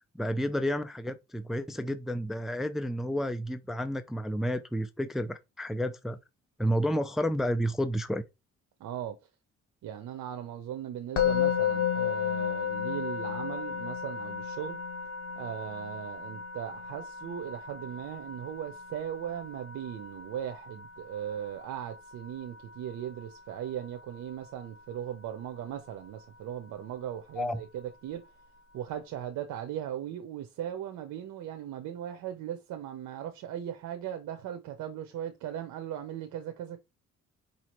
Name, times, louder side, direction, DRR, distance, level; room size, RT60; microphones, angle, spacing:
voice 1, 0.1-6.2 6.6-8.2 27.4-27.6, equal, ahead, 0.4 m, -31 dB
voice 2, 8.8-9.1 9.8-14.8 15.3-28.2 28.7-36.8, right 10 dB, 80° right, 0.7 m, -38 dB
Musical instrument, 11.2-22.3, left 8 dB, 50° left, 1.2 m, -33 dB
5.0 x 2.8 x 3.0 m
cardioid pair, 90°, 30 cm